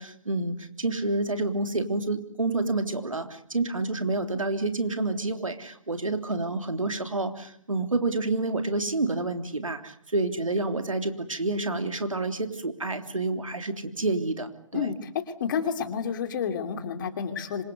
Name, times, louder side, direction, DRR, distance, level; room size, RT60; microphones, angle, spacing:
voice 1, 0.0-14.9, right 2 dB, 85° right, 7 dB, 3.4 m, -29 dB
voice 2, 15.4-17.6, left 7 dB, 40° left, 8 dB, 3.0 m, -29 dB
26.0 x 26.0 x 8.1 m, 0.63 s
figure-of-eight pair, 145°, 17 cm